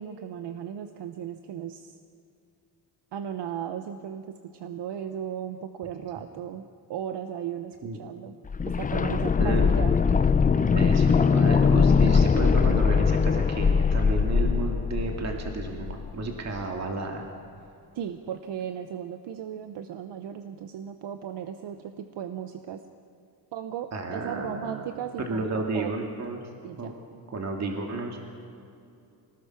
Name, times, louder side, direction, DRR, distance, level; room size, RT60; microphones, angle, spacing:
voice 1, 0.0-1.9 3.1-6.6 6.9-8.3 8.7-10.0 17.9-22.8 23.5-25.9 26.6-26.9, right 9 dB, 80° right, 8 dB, 1.0 m, -36 dB
sound 1, 8.5-16.3 16.5-16.6, left 5 dB, 20° left, 0.5 m, -21 dB
voice 2, 9.1-9.7 10.7-17.3 23.9-26.4 26.8-26.9 27.3-28.2, right 3 dB, 40° right, 2 dB, 2.2 m, -32 dB
26.0 x 19.5 x 5.9 m, 2.6 s
wide cardioid pair, 160°, 41 cm